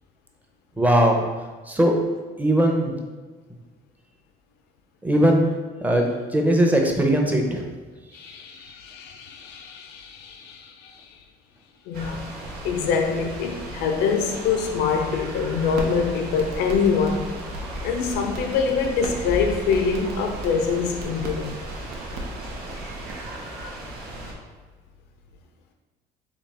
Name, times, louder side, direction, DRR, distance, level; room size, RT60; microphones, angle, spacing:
voice 1, 0.8-1.3 1.7-1.9 2.4-2.9 5.0-5.5 5.8-7.6, right 1 dB, 10° right, 0.6 m, -19 dB
voice 2, 8.1-11.2 11.9-12.3 12.6-17.4 17.8-21.6, left 5 dB, 85° left, 0.4 m, -25 dB
sound 1, 11.9-24.3, equal, 65° right, 1.1 m, -36 dB
sound 2, 15.5-23.2, right 2 dB, 85° right, 0.7 m, -38 dB
3.9 x 2.8 x 3.3 m
cardioid pair, 110°, 17 cm